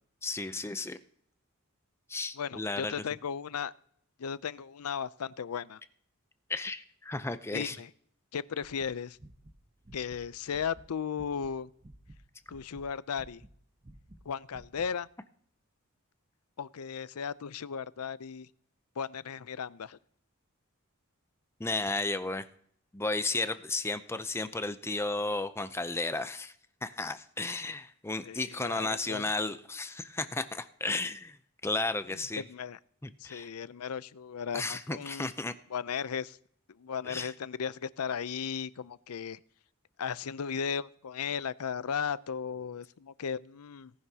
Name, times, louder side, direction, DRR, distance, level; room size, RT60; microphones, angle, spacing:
voice 1, 0.2-1.0 2.1-3.0 6.5-7.8 21.6-22.5 22.9-26.5 26.8-31.4 31.6-32.4 33.0-33.5 34.5-35.5 37.0-37.3, left 3 dB, 10° left, 11 dB, 0.5 m, -33 dB
voice 2, 2.4-3.7 4.2-5.8 7.5-7.9 8.3-9.2 9.9-11.7 12.5-13.4 14.3-15.1 16.6-18.5 19.0-20.0 28.2-29.2 32.4-32.8 33.2-35.3 35.7-36.4 36.8-39.4 40.0-43.9, left 7 dB, 90° left, 17 dB, 0.5 m, -36 dB
sound 1, 8.6-11.5 11.8-14.3 14.5-14.9, right 1 dB, 25° right, 1.0 m, -53 dB
18.0 x 10.5 x 2.8 m, 0.62 s
head